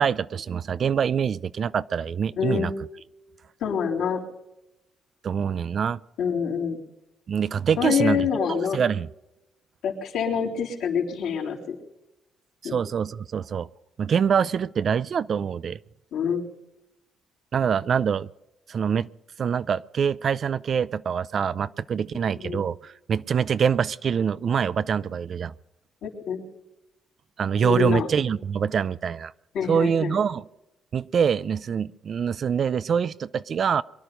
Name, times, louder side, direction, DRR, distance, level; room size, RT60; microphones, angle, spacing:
voice 1, 0.0-2.7 5.2-6.0 7.3-9.1 12.6-13.7 14.0-15.8 17.5-18.3 18.7-19.1 19.4-25.5 27.4-29.3 29.7-30.5 30.9-33.8, right 7 dB, 55° right, 17 dB, 0.5 m, -25 dB
voice 2, 2.4-2.7 3.6-4.2 6.2-6.8 7.8-8.8 9.8-11.8 12.6-12.8 16.1-16.5 22.3-22.6 26.0-26.4 27.6-28.1 29.5-30.2, left 7 dB, 80° left, -2 dB, 3.7 m, -26 dB
23.5 x 11.0 x 5.2 m, 0.94 s
cardioid pair, 90°, 0 cm